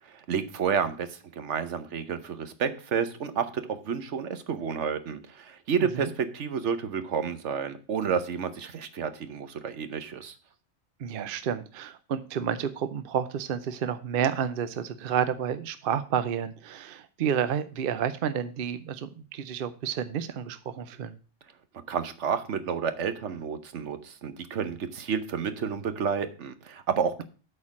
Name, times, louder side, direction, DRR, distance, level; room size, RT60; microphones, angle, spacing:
voice 1, 0.0-10.3 21.9-27.2, right 6 dB, 70° right, 11 dB, 1.2 m, -30 dB
voice 2, 5.8-6.1 11.0-21.2, right 8 dB, 55° right, 12 dB, 0.7 m, -30 dB
8.3 x 4.5 x 7.2 m, 0.36 s
omnidirectional pair, 1.3 m